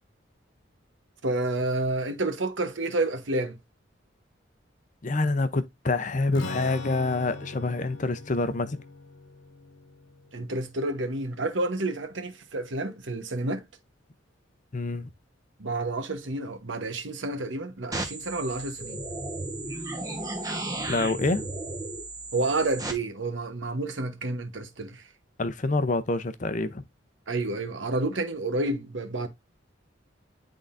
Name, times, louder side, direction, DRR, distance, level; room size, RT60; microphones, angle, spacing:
voice 1, 1.2-3.6 10.3-13.6 15.6-19.0 22.3-25.0 27.3-29.3, right 2 dB, 70° right, 1.1 m, -29 dB
voice 2, 5.0-8.8 14.7-15.1 20.9-21.5 25.4-26.8, left 3 dB, 40° left, 0.6 m, -27 dB
Strum, 6.3-12.0, left 2 dB, 75° left, 1.1 m, -42 dB
sound 1, 17.9-22.9, right 2 dB, 20° right, 1.1 m, -34 dB
10.5 x 3.8 x 2.6 m
head